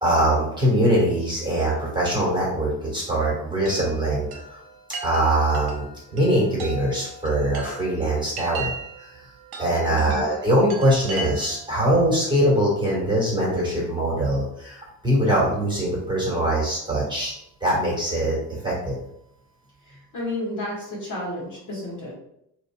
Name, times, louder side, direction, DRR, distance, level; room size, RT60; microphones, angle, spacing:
voice 1, 0.0-4.3 5.0-8.7 9.6-17.3 17.6-18.4 18.6-19.0, right 1 dB, 10° right, -5 dB, 1.5 m, -22 dB
Chime, 3.7-11.8, right 3 dB, 50° right, 0.9 m, -38 dB
voice 2, 9.9-10.2 19.8-22.1, left 1 dB, 40° left, -5 dB, 1.3 m, -32 dB
2.8 x 2.6 x 2.2 m, 0.76 s
hypercardioid pair, 60°, 48 cm